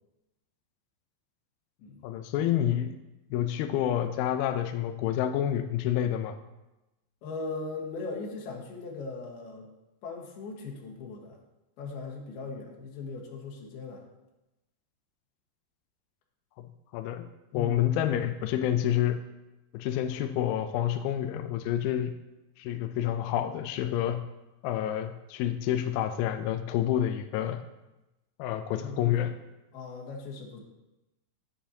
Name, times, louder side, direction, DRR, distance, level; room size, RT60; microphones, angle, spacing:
voice 1, 2.0-3.0 3.3-6.4 16.6-16.7 16.9-17.3 17.5-19.2 19.7-22.1 22.6-24.2 24.6-27.6 28.4-29.3, left 11 dB, 85° left, 8 dB, 2.1 m, -28 dB
voice 2, 7.2-9.7 10.0-11.4 11.8-14.0 17.5-17.8 28.8-29.2 29.7-30.6, left 3 dB, 70° left, -1 dB, 3.2 m, -39 dB
10.0 x 8.6 x 2.8 m, 1.0 s
omnidirectional pair, 4.8 m